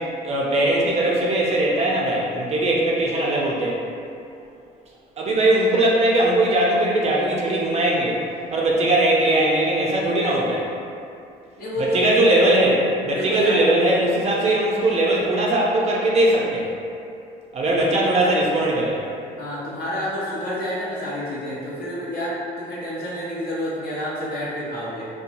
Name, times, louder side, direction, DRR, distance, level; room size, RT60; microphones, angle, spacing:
voice 1, 0.0-3.8 5.2-8.2 8.5-10.7 11.8-16.7 17.5-19.0, right 1 dB, 40° right, -3 dB, 0.4 m, -20 dB
voice 2, 11.6-12.5 13.1-13.6 17.8-18.3 19.3-25.1, equal, 75° left, -8 dB, 0.8 m, -28 dB
2.8 x 2.2 x 2.5 m, 2.5 s
cardioid pair, 110°, 17 cm